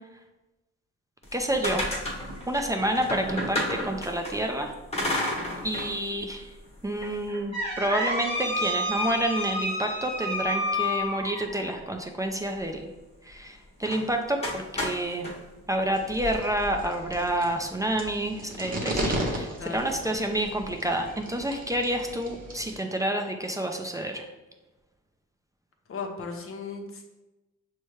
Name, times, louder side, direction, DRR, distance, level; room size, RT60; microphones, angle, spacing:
sound 1, 1.2-4.3 4.9-5.9 6.3-6.4 7.0-11.7 13.8-14.0 14.4-15.3, left 1 dB, 20° left, 1.1 m, -30 dB
voice 1, 1.3-1.9 2.5-4.7 5.6-6.5 6.8-12.8 13.3-15.3 15.7-24.3, right 1 dB, 10° right, 3 dB, 0.4 m, -29 dB
sound 2, 15.9-22.8, right 1 dB, 30° right, 0.8 m, -35 dB
voice 2, 25.9-27.0, left 4 dB, 45° left, 3 dB, 0.7 m, -36 dB
6.0 x 2.2 x 3.1 m, 1.1 s
cardioid pair, 90°, 30 cm